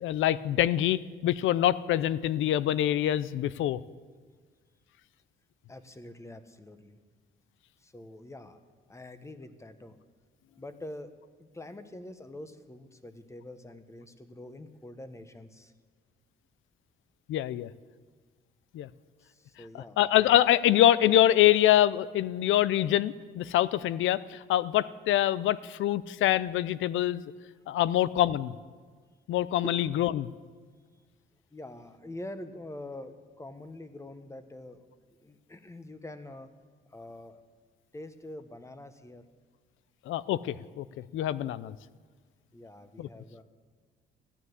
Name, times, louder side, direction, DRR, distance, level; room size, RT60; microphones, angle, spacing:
voice 1, 0.0-3.8 17.3-17.7 18.7-18.9 19.7-27.2 27.7-28.5 29.3-30.3 40.1-40.8 41.1-41.7 43.0-43.1, left 12 dB, 80° left, 18 dB, 0.5 m, -25 dB
voice 2, 5.7-7.0 7.8-8.6 8.9-10.0 10.6-11.1 11.4-15.7 19.2-20.0 29.6-29.8 31.5-34.8 35.2-36.5 36.9-37.4 37.9-39.2 42.5-43.4, left 1 dB, 15° left, 10 dB, 1.2 m, -45 dB
15.0 x 10.0 x 8.1 m, 1.5 s
cardioid pair, 90°, 20 cm